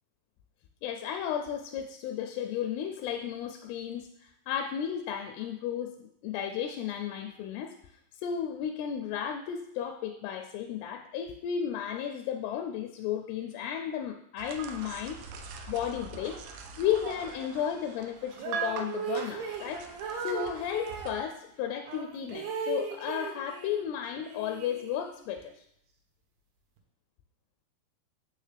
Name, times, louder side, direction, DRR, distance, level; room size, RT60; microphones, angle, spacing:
voice 1, 0.8-7.7 8.2-15.2 15.7-19.8 20.2-25.6, left 9 dB, 85° left, 5 dB, 2.5 m, -34 dB
sound 1, 14.4-21.2, right 6 dB, 90° right, 2.6 m, -42 dB
sound 2, 18.3-21.2 21.9-23.8 24.2-25.3, right 5 dB, 70° right, 2.2 m, -37 dB
7.0 x 6.3 x 3.3 m, 0.73 s
omnidirectional pair, 4.7 m